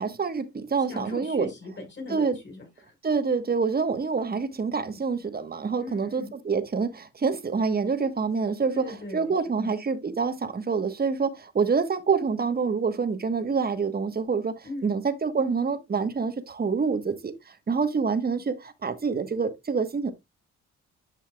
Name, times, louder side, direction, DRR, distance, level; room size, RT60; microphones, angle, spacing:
voice 1, 0.0-1.5 2.1-2.4 3.0-20.1, right 5 dB, 30° right, 1.3 m, -27 dB
voice 2, 0.9-2.9 5.8-6.3 8.7-9.7 14.6-15.0, left 2 dB, 35° left, 5.2 m, -39 dB
10.5 x 5.7 x 2.3 m
cardioid pair, 90°, 30 cm